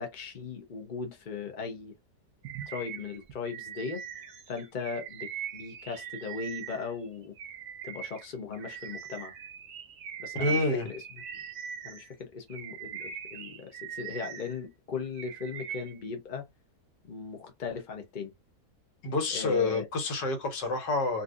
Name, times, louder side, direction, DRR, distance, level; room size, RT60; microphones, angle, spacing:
voice 1, 0.0-1.9 2.7-4.0 4.5-7.3 7.8-9.3 10.2-11.0 11.8-16.5 17.1-18.3 19.3-19.9, left 5 dB, 50° left, 0.5 m, -38 dB
Bird vocalization bird call bird song, 2.4-7.0 7.4-12.1 12.5-14.6 14.9-16.0, right 8 dB, 70° right, 1.3 m, -41 dB
voice 2, 10.4-10.9 19.0-21.2, left 3 dB, 90° left, 1.8 m, -28 dB
3.9 x 2.6 x 2.4 m
omnidirectional pair, 1.8 m